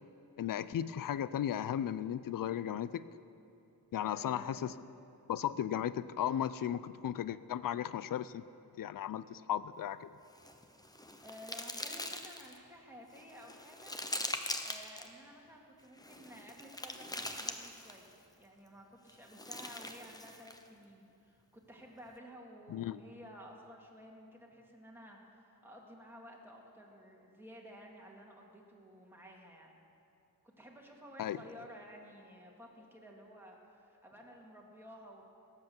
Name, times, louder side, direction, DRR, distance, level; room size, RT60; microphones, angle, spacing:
voice 1, 0.4-3.0 3.9-4.7 5.3-8.4 8.8-10.1 22.7-23.0 31.2-31.4, left 10 dB, 65° left, 16 dB, 0.5 m, -35 dB
voice 2, 4.0-4.7 11.2-14.0 14.6-18.1 18.4-29.8 30.4-35.2, equal, 5° right, -2 dB, 2.2 m, -53 dB
sound 1, 10.3-12.6 13.1-15.1 16.0-18.1 19.1-20.7, left 1 dB, 10° left, 0.8 m, -42 dB
17.5 x 8.2 x 7.1 m, 2.7 s
wide cardioid pair, 100°, 36 cm